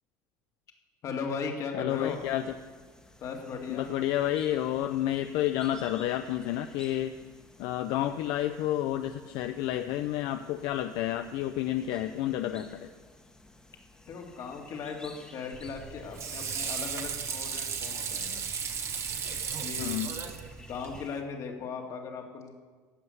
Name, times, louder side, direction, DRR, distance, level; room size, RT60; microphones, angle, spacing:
voice 1, 1.0-2.2 3.2-3.9 14.1-18.3 19.6-20.1 20.6-22.5, left 5 dB, 50° left, 2 dB, 2.1 m, -37 dB
voice 2, 1.7-2.5 3.7-7.1 7.6-12.9 19.8-20.1, left 12 dB, 80° left, 8 dB, 0.5 m, -30 dB
sound 1, 1.9-21.2, left 2 dB, 10° left, 1.4 m, -55 dB
Water / Sink (filling or washing), 15.5-21.0, right 6 dB, 40° right, 1.2 m, -35 dB
15.0 x 5.7 x 9.5 m, 1.5 s
cardioid pair, 125°, 7 cm